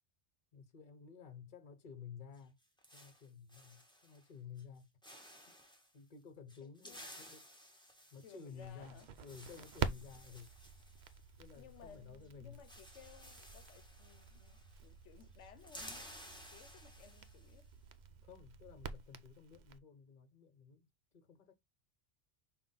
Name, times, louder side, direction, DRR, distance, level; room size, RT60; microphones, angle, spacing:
voice 1, 0.5-2.5 2.9-4.9 5.3-5.6 5.9-7.5 8.1-10.5 11.4-12.6 18.1-20.9 21.1-21.5, left 6 dB, 45° left, 1.0 m, -53 dB
sound 1, 2.3-4.3 4.6-4.8 5.0-5.9 6.5-12.0 12.2-12.3 12.5-14.9 15.2-17.6, equal, 5° left, 1.2 m, -56 dB
voice 2, 8.2-9.1 10.2-10.3 11.6-16.0 16.5-17.7, left 7 dB, 80° left, 1.0 m, -59 dB
Crackle, 8.6-19.8, right 6 dB, 55° right, 0.5 m, -47 dB
5.8 x 2.5 x 3.7 m
omnidirectional pair, 1.2 m